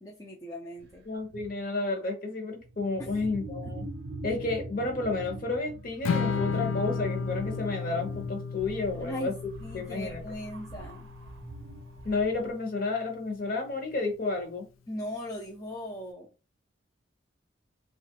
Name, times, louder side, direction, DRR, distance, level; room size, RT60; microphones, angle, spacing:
voice 1, 0.0-1.0 3.0-3.1 9.0-9.3 9.6-11.1 14.9-16.3, left 1 dB, 15° left, 0.4 m, -39 dB
sound 1, 0.8-0.9 1.2-1.6 2.6-12.5, right 2 dB, 60° right, 0.5 m, -43 dB
voice 2, 1.1-3.8 4.2-10.2 12.0-14.7, left 3 dB, 45° left, 0.9 m, -31 dB
Strum, 6.1-12.3, left 5 dB, 90° left, 0.3 m, -33 dB
3.0 x 2.4 x 2.8 m
head